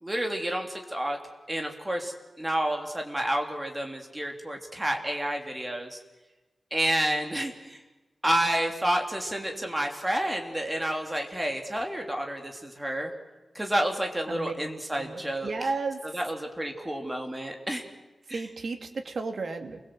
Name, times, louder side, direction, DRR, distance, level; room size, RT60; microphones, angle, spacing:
voice 1, 0.0-1.2 1.5-6.0 6.7-7.8 8.2-13.1 13.5-15.5 16.1-17.8 18.3-18.4, right 1 dB, 10° right, 3 dB, 3.0 m, -30 dB
voice 2, 14.9-16.2 18.3-19.8, right 3 dB, 55° right, 5 dB, 2.4 m, -33 dB
29.0 x 22.5 x 7.8 m, 1.1 s
wide cardioid pair, 175°, 0 cm